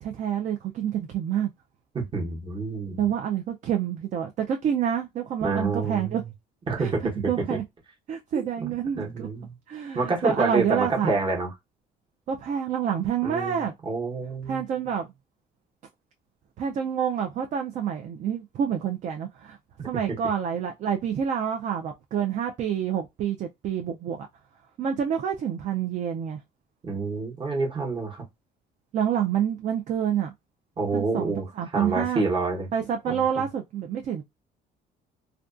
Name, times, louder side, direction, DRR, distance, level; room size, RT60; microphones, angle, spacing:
voice 1, 0.0-1.5 3.0-6.2 6.8-7.6 8.1-9.3 9.7-11.1 12.3-13.7 14.5-15.1 16.6-19.6 19.8-24.3 24.8-26.4 28.9-30.3 30.9-32.2 32.7-34.2, right 8 dB, 45° right, 0.4 m, -28 dB
voice 2, 1.9-3.0 5.4-6.3 6.7-7.6 8.3-9.6 9.9-11.5 13.2-14.6 19.8-19.9 26.8-28.2 30.8-31.4 31.7-32.7 33.1-33.2, right 3 dB, 30° right, 0.9 m, -28 dB
2.5 x 2.2 x 2.4 m
cardioid pair, 110°, 17 cm